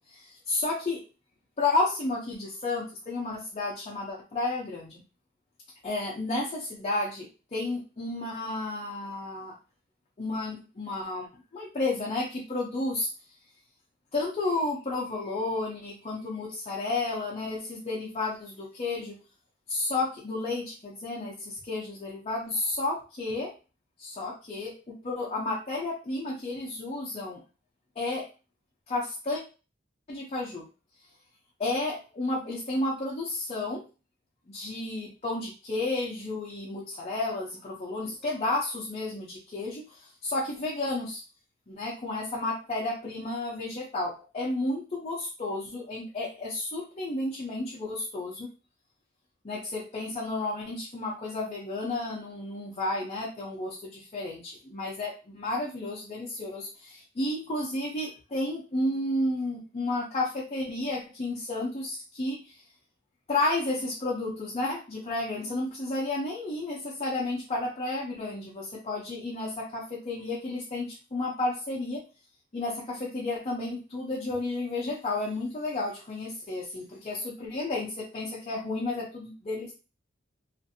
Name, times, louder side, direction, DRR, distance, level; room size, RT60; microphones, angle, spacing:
voice 1, 0.1-1.0 1.6-5.0 5.8-9.5 10.2-11.3 11.5-13.1 14.1-19.2 19.7-23.5 24.0-27.4 28.0-28.3 28.9-29.4 30.1-30.7 31.6-33.8 34.5-41.2 41.7-48.5 49.4-62.6 63.3-72.0 72.5-79.7, left 2 dB, 30° left, -4 dB, 0.6 m, -32 dB
2.5 x 2.5 x 2.6 m, 0.33 s
head